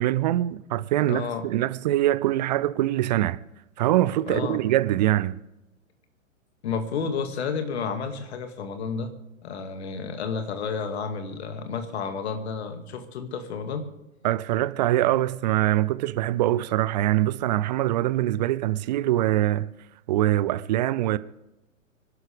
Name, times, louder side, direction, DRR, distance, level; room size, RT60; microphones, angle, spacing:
voice 1, 0.0-3.4 3.8-5.4 14.2-19.7 20.1-21.2, right 14 dB, 35° right, 0.5 m, -23 dB
voice 2, 1.1-1.5 4.3-4.6 6.6-9.1 9.4-13.9, left 5 dB, 50° left, 2.2 m, -31 dB
25.5 x 11.5 x 3.5 m
figure-of-eight pair, 110°, 40 cm